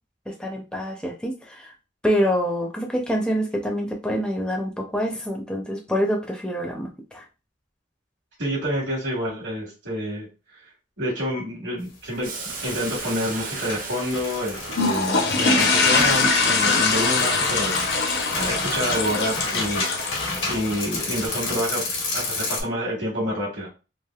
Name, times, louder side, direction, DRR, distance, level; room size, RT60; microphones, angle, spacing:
voice 1, 0.3-1.7 2.0-7.2, equal, 5° left, 1 dB, 0.4 m, -26 dB
voice 2, 8.4-10.3 11.0-12.3 12.6-17.7 18.3-19.8 20.5-21.8 22.1-23.7, equal, 70° right, -6 dB, 1.4 m, -28 dB
sound 1, 12.2-22.6, left 3 dB, 85° left, 1.1 m, -31 dB
Boiling, 12.2-20.0, right 4 dB, 45° right, 0.5 m, -39 dB
sound 2, 14.7-21.3, left 3 dB, 55° left, 0.6 m, -23 dB
3.3 x 2.4 x 2.3 m, 0.31 s
head